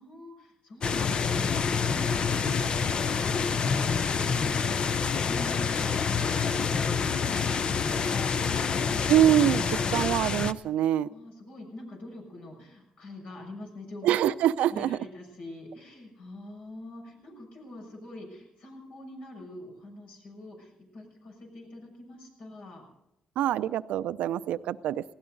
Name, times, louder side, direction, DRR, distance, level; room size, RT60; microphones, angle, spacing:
voice 1, 0.0-9.1 11.1-14.1 14.7-22.8, left 1 dB, 75° left, 1 dB, 6.6 m, -45 dB
sound 1, 0.8-10.5, left 5 dB, 45° left, 0.6 m, -27 dB
voice 2, 9.1-11.1 14.0-15.0 23.4-25.0, right 11 dB, 90° right, 13 dB, 0.5 m, -25 dB
20.0 x 17.0 x 3.9 m, 0.87 s
cardioid pair, 95°, 2 cm